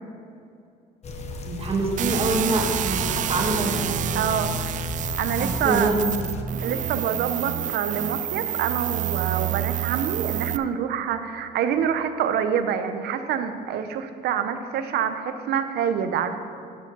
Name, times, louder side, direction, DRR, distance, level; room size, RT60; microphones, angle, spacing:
sound 1, 1.0-6.4, left 1 dB, 40° left, 1.1 m, -33 dB
voice 1, 1.4-4.0 5.3-5.9, right 3 dB, 35° right, 0 dB, 1.8 m, -25 dB
sound 2, 2.0-10.6, right 12 dB, 50° right, 0.4 m, -28 dB
voice 2, 4.1-4.6 5.2-5.9 6.6-16.4, right 8 dB, 70° right, 9 dB, 0.8 m, -26 dB
12.0 x 5.0 x 6.8 m, 2.6 s
cardioid pair, 110°, 17 cm